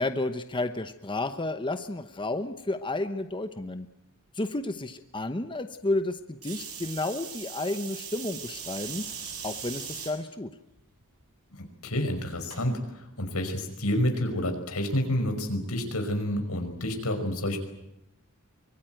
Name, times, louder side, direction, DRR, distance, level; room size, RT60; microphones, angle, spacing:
voice 1, 0.0-3.9 4.3-10.5, left 2 dB, 25° left, 8 dB, 1.0 m, -31 dB
sound 1, 6.4-10.1 10.8-11.2 12.5-12.6, right 7 dB, 85° right, 6.8 m, -39 dB
voice 2, 11.5-17.6, left 1 dB, 90° left, 5 dB, 5.3 m, -29 dB
24.0 x 22.5 x 9.2 m, 0.88 s
head